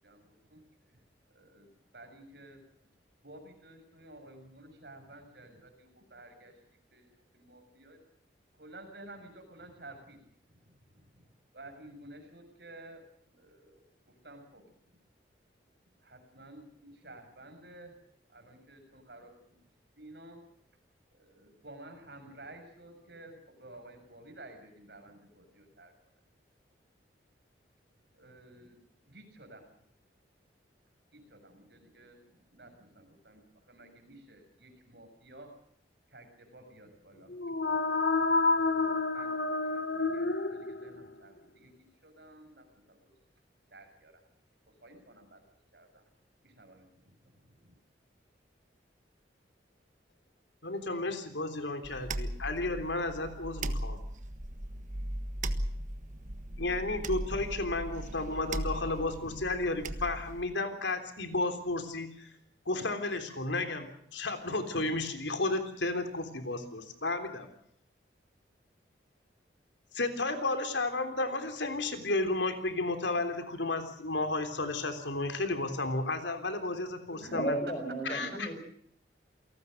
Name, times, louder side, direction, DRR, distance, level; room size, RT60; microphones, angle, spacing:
voice 1, 0.0-1.0 1.3-1.7 1.9-2.6 3.2-6.6 6.9-7.1 7.3-8.0 8.6-10.2 10.5-11.3 11.5-13.0 13.3-14.7 16.0-17.9 18.3-19.6 20.0-20.4 21.1-25.9 28.1-28.8 29.0-29.6 31.1-33.4 33.7-35.5 36.1-41.7 42.0-43.2 43.7-44.2 44.8-45.4 45.7-46.0 46.4-47.7 77.2-77.4 78.1-78.4, right 2 dB, 60° right, 5 dB, 6.8 m, -53 dB
sound 1, 37.3-41.1, left 3 dB, 65° left, 1.8 m, -29 dB
voice 2, 50.6-54.0 56.6-62.3 62.6-67.5 69.9-77.6 78.1-78.5, left 2 dB, 80° left, 7 dB, 3.4 m, -33 dB
sound 2, 51.8-60.4, right 1 dB, 45° right, 1.4 m, -38 dB
voice 3, 77.3-78.5, right 1 dB, 30° left, 4 dB, 7.8 m, -33 dB
28.5 x 18.5 x 6.6 m, 0.67 s
head